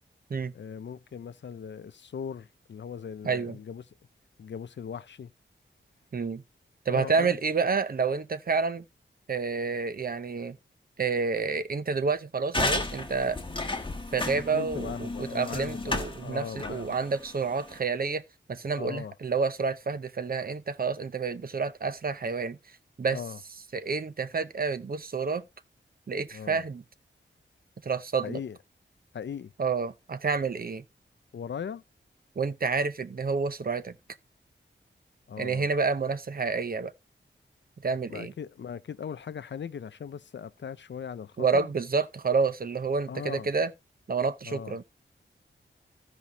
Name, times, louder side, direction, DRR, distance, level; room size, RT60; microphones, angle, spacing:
voice 1, 0.5-3.8 4.4-5.3 6.9-7.4 14.5-17.0 18.8-19.1 23.1-23.4 26.3-26.6 28.2-28.6 29.1-29.5 31.3-31.8 35.3-35.7 38.1-41.7 43.1-43.5 44.5-44.8, left 7 dB, 70° left, 0.6 m, -39 dB
voice 2, 3.2-3.6 6.1-6.4 6.9-8.8 9.3-10.6 11.0-13.4 14.1-14.9 15.2-18.2 18.5-22.6 23.0-23.2 23.7-25.4 26.1-26.8 27.8-28.4 29.6-30.8 32.4-34.0 35.4-36.9 37.8-38.3 41.4-43.7 44.1-44.8, right 4 dB, 50° right, 0.8 m, -29 dB
sound 1, 12.5-17.8, left 2 dB, 25° left, 1.3 m, -33 dB
15.5 x 5.4 x 2.8 m
wide cardioid pair, 105°, 20 cm